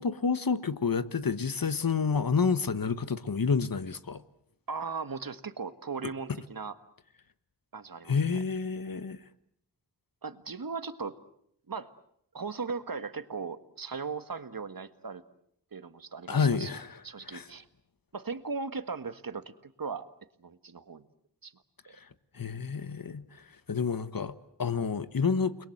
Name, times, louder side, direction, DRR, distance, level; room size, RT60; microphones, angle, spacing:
voice 1, 0.0-4.2 8.1-9.2 16.3-17.0 17.3-17.4 22.3-23.4 23.7-25.7, left 5 dB, 55° left, 1.4 m, -29 dB
voice 2, 4.7-6.7 7.7-8.2 10.2-11.2 11.7-11.9 12.3-15.2 15.7-16.7 17.0-17.7 18.1-20.1 20.4-21.1 21.4-21.5, right 5 dB, 55° right, 1.6 m, -38 dB
29.5 x 22.0 x 8.0 m
wide cardioid pair, 65°, 41 cm